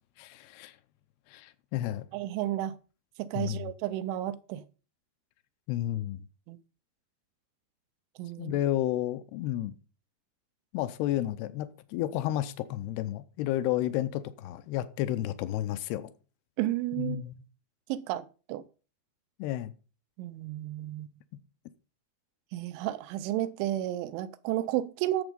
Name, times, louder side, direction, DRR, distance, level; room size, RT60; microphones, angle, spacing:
voice 1, 0.2-0.7 1.3-2.1 3.3-3.7 5.7-6.2 8.4-9.7 10.7-16.1 17.0-17.4 19.4-19.7, left 13 dB, 80° left, 2.4 m, -31 dB
voice 2, 2.1-2.8 3.2-4.6 6.5-6.6 8.2-8.6 16.6-17.2 17.9-18.6 20.2-21.1 22.5-25.2, right 14 dB, 90° right, 3.2 m, -32 dB
11.0 x 7.1 x 5.2 m
omnidirectional pair, 5.4 m